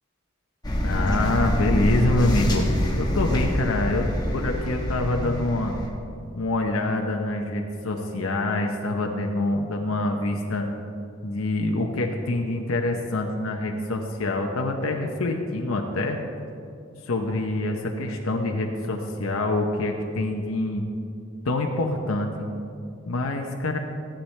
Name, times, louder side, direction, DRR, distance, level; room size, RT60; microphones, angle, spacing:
sound 1, 0.6-5.9, equal, 20° left, 1.1 m, -25 dB
voice 1, 0.8-2.6 3.0-5.7 6.3-10.7 11.2-16.2 17.1-20.8 21.4-22.5 23.1-23.8, left 2 dB, 80° left, 2 dB, 0.8 m, -26 dB
14.0 x 10.0 x 3.3 m, 2.5 s
head